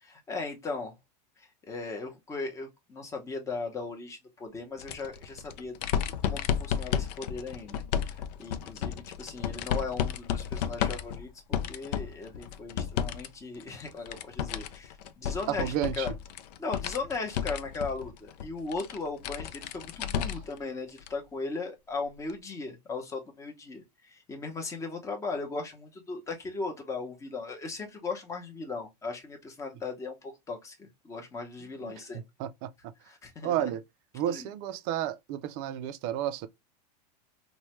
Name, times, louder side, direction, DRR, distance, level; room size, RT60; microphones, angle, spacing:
voice 1, 0.0-1.0 1.4-5.8 6.3-7.8 8.1-16.1 16.6-32.2 33.1-33.7 34.3-34.5, left 3 dB, 15° left, 0.8 m, -38 dB
sound 1, 4.8-13.3 13.6-20.6 21.0-21.1 22.3-22.4, left 8 dB, 70° left, 0.4 m, -33 dB
voice 2, 15.5-16.1 31.6-32.0 32.4-32.9 33.4-33.8 34.1-36.5, right 11 dB, 40° right, 0.4 m, -32 dB
3.1 x 2.2 x 2.9 m
supercardioid pair, 145°, 21 cm